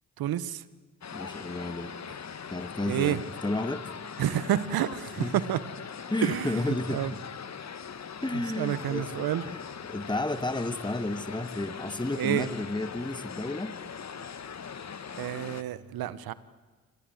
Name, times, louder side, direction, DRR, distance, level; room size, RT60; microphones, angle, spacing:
voice 1, 0.2-0.6 2.9-3.2 4.2-5.6 6.2-7.1 8.3-9.4 12.1-12.5 15.2-16.3, right 12 dB, 70° right, 16 dB, 1.5 m, -29 dB
sound 1, 1.0-15.6, left 7 dB, 45° left, 1.8 m, -41 dB
voice 2, 1.1-2.2 2.5-3.9 5.2-5.4 6.1-7.1 8.2-9.6 9.9-13.8, left 2 dB, 10° left, 11 dB, 2.1 m, -32 dB
29.0 x 25.0 x 8.2 m, 1.4 s
hypercardioid pair, 50°, 37 cm